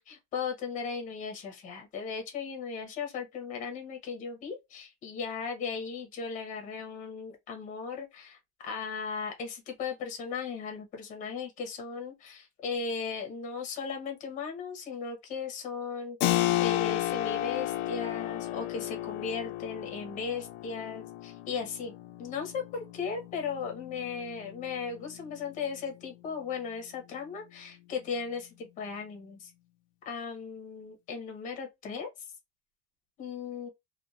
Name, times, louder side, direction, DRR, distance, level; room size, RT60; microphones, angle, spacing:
voice 1, 0.0-8.4 8.6-21.9 22.2-29.5 30.0-32.1 33.2-33.7, left 5 dB, 25° left, 0.8 m, -37 dB
Keyboard (musical), 16.2-26.6, left 15 dB, 80° left, 0.5 m, -34 dB
2.7 x 2.2 x 2.2 m
supercardioid pair, 170°, 33 cm